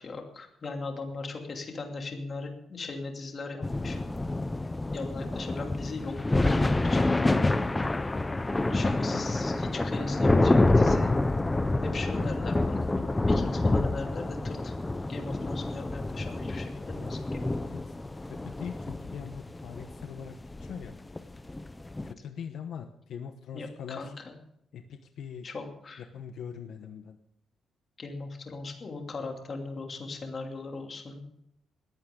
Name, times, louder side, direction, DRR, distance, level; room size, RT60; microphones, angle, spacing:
voice 1, 0.0-4.0 4.9-7.0 8.7-11.1 11.8-14.7 15.1-17.4 23.5-24.3 25.4-26.0 28.0-31.2, left 3 dB, 30° left, 2 dB, 2.8 m, -38 dB
sound 1, 3.6-22.1, left 2 dB, 10° left, 0.6 m, -27 dB
voice 2, 8.7-9.4 17.4-17.9 18.2-20.9 22.0-24.1 24.7-25.5 26.0-27.2, left 7 dB, 65° left, 6 dB, 1.1 m, -42 dB
20.0 x 15.0 x 3.8 m, 0.76 s
cardioid pair, 170°, 0 cm